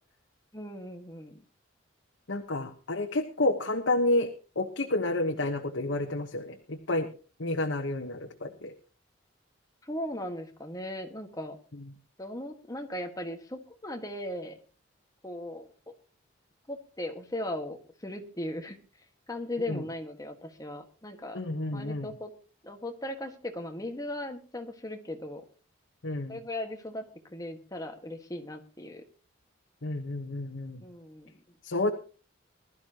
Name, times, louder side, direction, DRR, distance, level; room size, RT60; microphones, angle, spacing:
voice 1, 0.5-1.4 9.8-11.6 12.2-14.6 15.2-15.7 16.7-18.8 19.3-21.4 21.7-22.3 22.6-25.4 26.3-27.0 27.3-29.0 30.8-31.3, left 1 dB, 20° left, 5 dB, 1.7 m, -38 dB
voice 2, 2.3-4.3 4.6-7.1 7.4-8.7 19.7-19.8 21.3-22.1 26.0-26.4 29.8-30.8 31.6-31.9, left 2 dB, 70° left, 3 dB, 1.2 m, -30 dB
21.0 x 12.5 x 2.9 m, 0.36 s
head